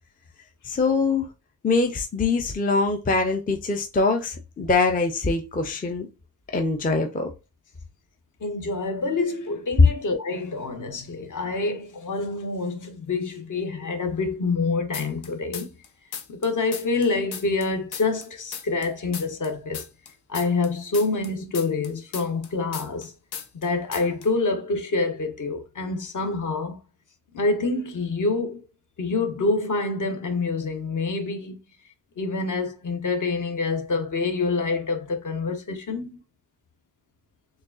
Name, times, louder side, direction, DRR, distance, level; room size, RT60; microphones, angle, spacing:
voice 1, 0.6-1.3 1.6-6.1 6.5-7.3, left 3 dB, 25° left, 0.4 m, -23 dB
voice 2, 8.4-15.7 16.3-19.8 20.3-23.1 23.5-26.8 27.3-28.6 29.0-31.6 32.2-36.2, left 3 dB, 50° left, 0.8 m, -26 dB
sound 1, 14.9-15.9 16.1-18.9 19.1-23.1 23.3-23.7 23.9-24.3, left 8 dB, 85° left, 0.7 m, -36 dB
6.3 x 2.3 x 2.4 m
wide cardioid pair, 140°, 38 cm